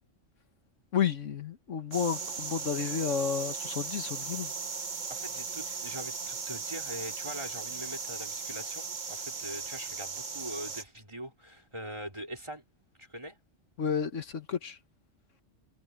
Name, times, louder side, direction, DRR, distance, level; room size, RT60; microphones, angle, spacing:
voice 1, 0.9-4.5 13.8-14.8, left 7 dB, 85° left, 1.7 m, -31 dB
sound 1, 1.9-10.8, right 5 dB, 40° right, 1.2 m, -37 dB
voice 2, 5.1-12.6 13.0-13.4, equal, 25° right, 4.1 m, -42 dB
omnidirectional pair, 1.3 m